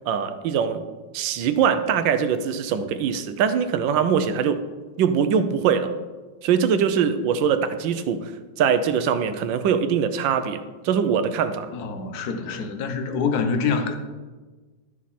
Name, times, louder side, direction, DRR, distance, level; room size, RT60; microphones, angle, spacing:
voice 1, 0.1-0.8 1.1-4.6 5.0-5.9 6.4-8.3 8.6-11.7, right 7 dB, 80° right, 1.4 m, -22 dB
voice 2, 11.7-14.0, left 5 dB, 60° left, 1.3 m, -25 dB
12.5 x 7.2 x 4.2 m
omnidirectional pair, 2.0 m